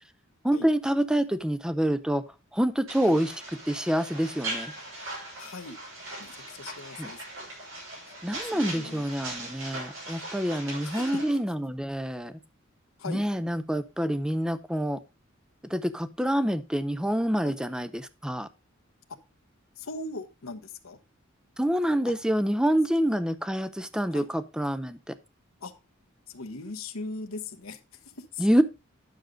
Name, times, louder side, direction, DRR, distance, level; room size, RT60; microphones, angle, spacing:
voice 1, 0.4-2.2 2.5-3.3 3.7-4.7 7.0-7.1 8.2-12.3 13.1-15.0 15.7-18.5 21.6-25.0 28.4-28.6, equal, 5° right, 0.6 m, -27 dB
sound 1, 2.9-11.4, right 2 dB, 90° right, 6.4 m, -39 dB
voice 2, 5.4-5.8 6.2-7.2 8.1-8.2 8.4-9.0 10.8-11.2 13.0-13.2 17.4-17.5 19.8-21.0 24.1-24.3 25.6-25.7 26.3-27.8 28.2-28.6, left 3 dB, 90° left, 1.1 m, -39 dB
10.5 x 6.5 x 3.8 m
head